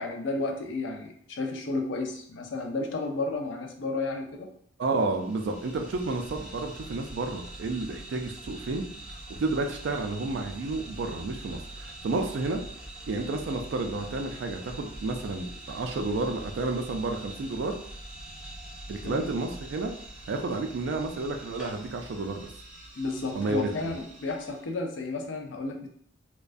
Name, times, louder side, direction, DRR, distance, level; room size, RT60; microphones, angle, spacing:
voice 1, 0.0-4.5 19.0-19.3 23.0-25.9, left 3 dB, 70° left, 3 dB, 0.4 m, -32 dB
voice 2, 4.8-12.6 13.1-17.8 18.9-19.9 20.3-22.5 23.3-23.9, right 3 dB, 65° right, 5 dB, 0.3 m, -31 dB
sound 1, 5.0-24.7, right 1 dB, 5° right, 0.5 m, -44 dB
2.3 x 2.1 x 2.5 m, 0.63 s
head